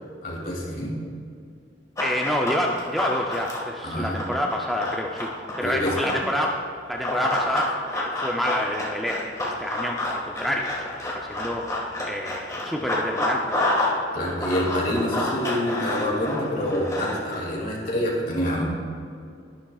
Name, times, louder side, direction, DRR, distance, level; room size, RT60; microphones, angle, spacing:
voice 1, 0.2-0.9 3.8-4.2 5.6-5.9 14.1-18.6, left 1 dB, 50° left, -3 dB, 2.6 m, -27 dB
Run, 2.0-6.3 7.0-14.0 14.2-17.4, left 1 dB, 20° left, 1.7 m, -28 dB
voice 2, 2.0-5.3 5.6-6.6 6.9-13.5, equal, ahead, -1 dB, 0.5 m, -28 dB
11.5 x 11.5 x 2.4 m, 2.3 s
head